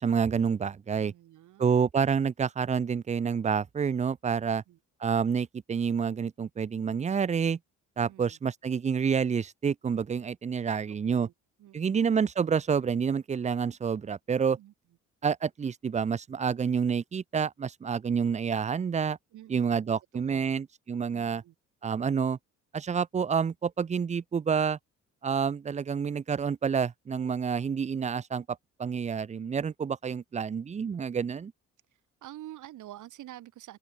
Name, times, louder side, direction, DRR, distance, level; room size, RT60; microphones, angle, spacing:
voice 1, 0.0-1.1 1.6-4.6 5.0-7.6 8.0-11.3 11.7-14.6 15.2-19.2 19.5-21.4 21.8-22.4 22.7-24.8 25.2-28.4 28.8-31.5, right 6 dB, 25° right, 0.5 m, -28 dB
voice 2, 1.0-1.7 4.5-4.8 8.0-8.4 10.7-11.3 11.6-12.0 14.6-14.7 19.3-19.9 20.1-20.5 21.1-21.5 31.9-33.8, right 14 dB, 80° right, 2.2 m, -48 dB
cardioid pair, 90°, 30 cm